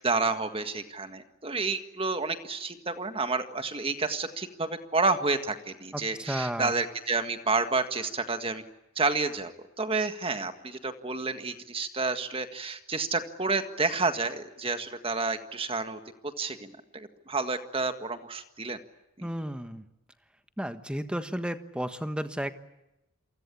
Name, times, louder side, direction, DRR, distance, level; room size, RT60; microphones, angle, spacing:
voice 1, 0.0-8.6 9.0-9.5 9.8-18.8 19.2-19.3, right 3 dB, 25° right, 8 dB, 1.7 m, -30 dB
voice 2, 5.9-6.7 19.2-19.8 20.6-22.5, equal, 5° right, 9 dB, 1.4 m, -33 dB
29.0 x 24.0 x 8.6 m, 0.92 s
head